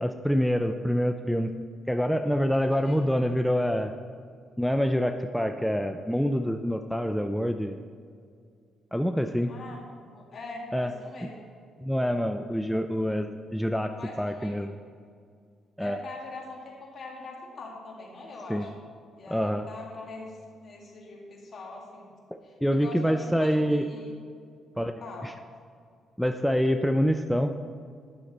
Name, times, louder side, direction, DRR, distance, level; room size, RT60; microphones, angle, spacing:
voice 1, 0.0-1.5 1.9-3.9 4.6-7.8 8.9-9.5 10.7-10.9 11.2-11.3 11.8-14.7 15.8-16.0 18.5-18.7 19.3-19.7 22.6-23.8 24.8-24.9 25.2-25.3 26.2-27.5, equal, ahead, 7 dB, 0.4 m, -26 dB
voice 2, 2.5-3.0 9.5-9.8 10.1-11.5 14.0-14.6 15.8-18.7 19.2-20.3 20.6-22.1 22.4-24.2 25.0-25.3, left 3 dB, 50° left, -1 dB, 2.1 m, -42 dB
10.5 x 6.6 x 4.1 m, 2.2 s
cardioid pair, 90°, 0 cm